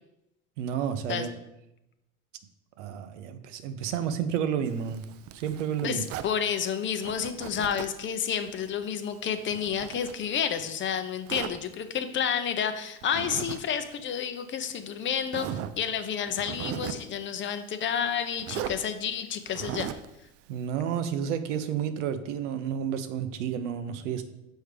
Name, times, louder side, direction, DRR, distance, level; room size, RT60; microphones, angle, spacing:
voice 1, 0.6-1.3 2.8-5.0 5.3-6.0 20.5-24.2, right 8 dB, 75° right, 0.7 m, -31 dB
Zipper (clothing), 4.7-6.4 7.0-8.0 8.4-10.7 11.3-11.6 13.0-13.6 13.9-14.0 14.7-14.8 15.3-15.8 16.3-17.1 18.4-18.8 19.5-20.1, right 10 dB, 40° right, 0.4 m, -38 dB
voice 2, 5.8-19.9, left 8 dB, 35° left, 0.6 m, -30 dB
6.4 x 4.5 x 3.3 m
hypercardioid pair, 85°, 36 cm